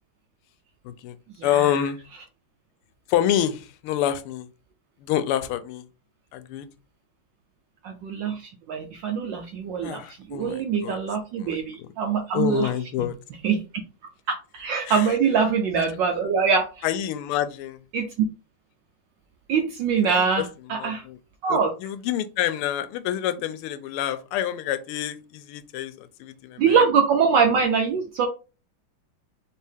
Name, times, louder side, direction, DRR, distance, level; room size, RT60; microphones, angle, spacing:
voice 1, 0.8-1.2 1.4-2.0 3.1-4.5 5.0-5.8 6.3-6.7 9.8-11.0 11.4-11.9 12.3-13.2 14.9-15.1 16.8-17.8 20.0-20.4 20.7-21.2 21.5-26.8, left 11 dB, 85° left, 12 dB, 1.5 m, -27 dB
voice 2, 1.4-1.7 7.8-12.7 13.0-13.1 13.4-13.6 14.5-16.7 17.9-18.1 19.5-21.0 21.4-21.7 26.6-28.3, right 6 dB, 75° right, 3 dB, 1.2 m, -23 dB
4.5 x 2.8 x 3.4 m, 0.32 s
omnidirectional pair, 2.4 m